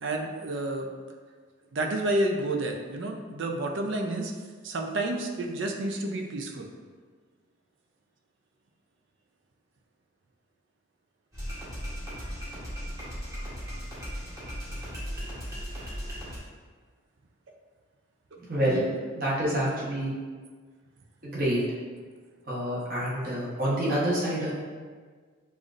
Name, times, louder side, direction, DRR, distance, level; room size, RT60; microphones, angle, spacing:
voice 1, 0.0-0.9 1.7-4.3 4.6-6.7 12.2-12.3, right 1 dB, 60° right, 2 dB, 0.5 m, -30 dB
sound 1, 11.3-16.4, equal, 15° right, 1.0 m, -37 dB
voice 2, 18.4-18.9 19.2-20.1 21.2-21.6 22.5-24.5, right 1 dB, 45° right, -8 dB, 1.1 m, -27 dB
6.8 x 2.5 x 2.5 m, 1.5 s
head